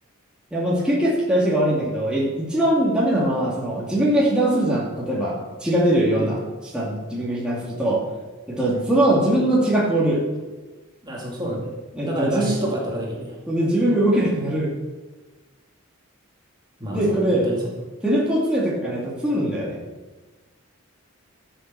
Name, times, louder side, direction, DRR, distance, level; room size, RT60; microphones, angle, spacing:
voice 1, 0.5-6.4 6.7-8.0 8.5-10.2 11.9-12.6 13.5-14.7 16.9-17.5 18.0-19.8, right 1 dB, 5° right, -6 dB, 2.4 m, -21 dB
voice 2, 11.0-11.8 12.0-13.4 16.8-17.7, right 1 dB, 20° right, -3 dB, 2.4 m, -28 dB
13.0 x 7.0 x 6.9 m, 1.2 s
head